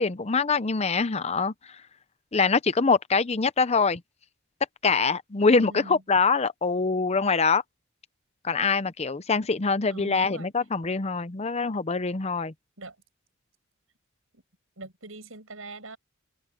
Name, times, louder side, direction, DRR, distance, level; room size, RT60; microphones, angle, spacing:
voice 1, 0.0-1.5 2.3-4.0 4.8-7.6 8.4-12.5, left 4 dB, 30° left, 0.7 m, -24 dB
voice 2, 5.6-6.0 9.9-10.5 10.8-10.9 12.8-13.0 14.3-14.4 14.8-16.0, right 2 dB, 75° right, 7.9 m, -42 dB
head